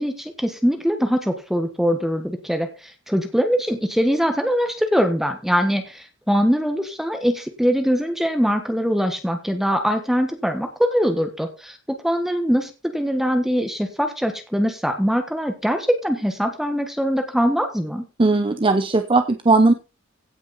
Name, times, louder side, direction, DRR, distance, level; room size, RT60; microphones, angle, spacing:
voice 1, 0.0-18.0, equal, ahead, 6 dB, 1.3 m, -22 dB
voice 2, 18.2-19.7, right 3 dB, 25° right, 8 dB, 0.7 m, -17 dB
16.5 x 6.2 x 4.1 m, 0.31 s
head